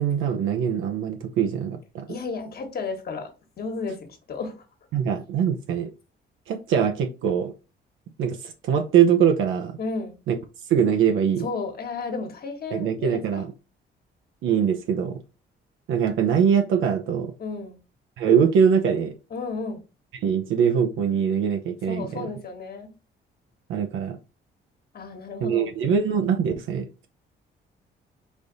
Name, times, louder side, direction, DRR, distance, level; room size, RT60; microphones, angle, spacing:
voice 1, 0.0-2.1 4.9-5.9 6.5-7.5 8.2-9.8 10.3-10.4 10.7-11.5 12.7-13.5 14.4-15.2 15.9-17.3 18.2-19.1 20.2-22.3 23.7-24.2 25.4-27.1, right 7 dB, 80° right, 0.6 m, -22 dB
voice 2, 2.1-3.3 3.6-4.0 4.3-4.6 9.8-10.2 11.4-13.4 17.4-17.8 19.3-19.8 21.9-22.9 24.9-25.7, left 4 dB, 50° left, 1.3 m, -32 dB
5.2 x 2.6 x 3.9 m
cardioid pair, 90°, 20 cm